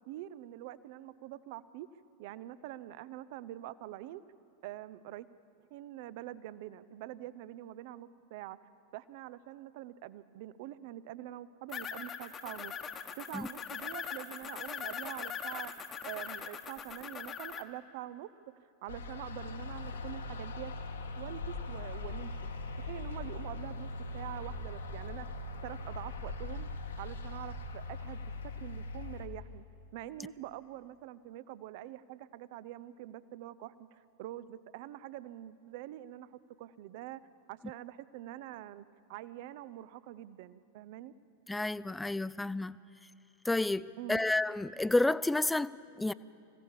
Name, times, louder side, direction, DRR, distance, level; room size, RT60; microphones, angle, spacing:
voice 1, 0.1-1.9 2.2-4.2 4.6-5.3 5.7-8.6 8.9-12.7 13.2-18.3 18.8-20.7 21.2-22.3 22.8-25.3 25.6-26.7 27.0-29.6 29.9-37.2 37.5-41.1 44.0-44.2, right 14 dB, 50° right, 0.7 m, -45 dB
sound 1, 11.7-17.6, left 6 dB, 25° left, 1.2 m, -41 dB
sound 2, 18.9-29.3, left 2 dB, 70° left, 1.7 m, -41 dB
voice 2, 41.5-42.8 43.4-46.1, left 2 dB, 5° left, 0.4 m, -30 dB
25.5 x 16.5 x 7.4 m
figure-of-eight pair, 90°, 0 cm